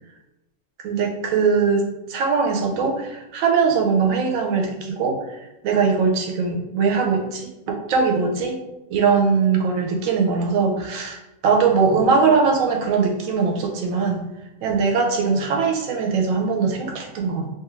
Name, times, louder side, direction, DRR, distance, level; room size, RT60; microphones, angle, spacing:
voice 1, 0.8-8.6 8.9-14.2 14.6-17.5, right 5 dB, 90° right, 2 dB, 1.0 m, -21 dB
2.5 x 2.4 x 3.0 m, 0.95 s
omnidirectional pair, 1.4 m